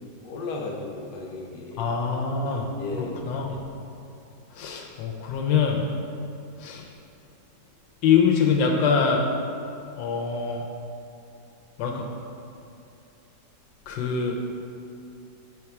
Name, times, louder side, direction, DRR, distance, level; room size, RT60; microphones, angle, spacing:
voice 1, 0.0-1.9 2.8-3.4, left 3 dB, 70° left, 0 dB, 1.3 m, -35 dB
voice 2, 1.8-2.7 3.0-3.6 4.5-5.8 6.6-6.8 8.0-9.3 10.0-10.6 11.8-12.0 13.9-14.4, left 6 dB, 85° left, 1 dB, 1.4 m, -24 dB
5.0 x 4.7 x 5.7 m, 2.7 s
omnidirectional pair, 2.0 m